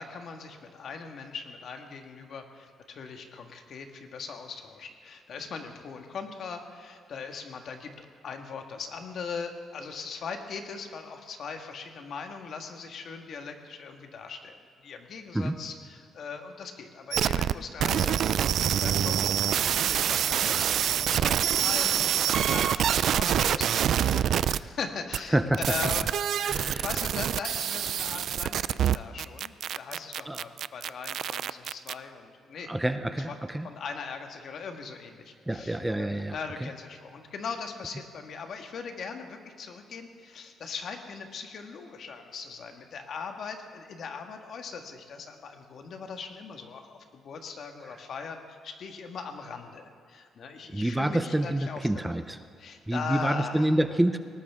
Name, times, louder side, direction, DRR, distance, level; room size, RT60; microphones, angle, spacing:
voice 1, 0.0-25.4 25.7-26.1 26.5-29.5 29.8-32.7 33.3-33.4 33.6-52.2 52.6-53.7, left 5 dB, 60° left, 5 dB, 1.6 m, -40 dB
sound 1, 17.1-17.5 17.8-24.6 25.1-25.2 25.5-31.9, right 10 dB, 70° right, 0.3 m, -26 dB
voice 2, 26.4-26.9 30.3-30.4 32.7-33.7 35.5-36.7 47.9-48.0 50.7-52.4 52.9-54.2, right 1 dB, 10° right, 10 dB, 0.7 m, -27 dB
19.0 x 19.0 x 3.6 m, 2.1 s
cardioid pair, 90°, 0 cm